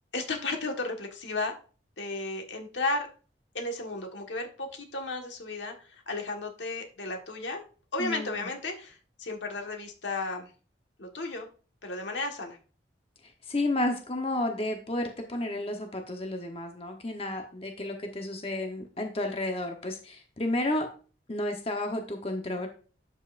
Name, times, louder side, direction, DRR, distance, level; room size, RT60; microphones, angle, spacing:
voice 1, 0.1-1.5 2.0-3.1 3.5-7.6 7.9-10.5 11.0-11.5 11.8-12.6, left 2 dB, 90° left, 3 dB, 1.6 m, -34 dB
voice 2, 8.0-8.5 13.5-20.9 21.3-22.7, left 1 dB, 30° left, 3 dB, 1.0 m, -31 dB
11.5 x 5.5 x 2.6 m, 0.38 s
head